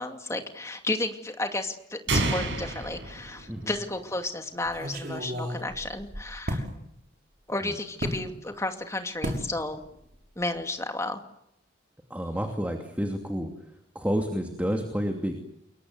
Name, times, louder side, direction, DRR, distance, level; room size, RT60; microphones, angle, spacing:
voice 1, 0.0-6.7 7.5-9.8 10.4-11.2, left 2 dB, 15° left, 6 dB, 2.5 m, -32 dB
sound 1, 2.1-4.0, right 2 dB, 80° right, 6.1 m, -29 dB
sound 2, 2.8-3.4 3.7-3.8 4.7-6.7 8.0-8.2 9.2-9.5 9.8-10.2 10.4-10.6, equal, 55° right, 5.9 m, -34 dB
voice 2, 12.1-13.5 13.9-15.4, equal, 10° right, 3 dB, 2.7 m, -29 dB
29.0 x 22.5 x 8.1 m, 0.79 s
head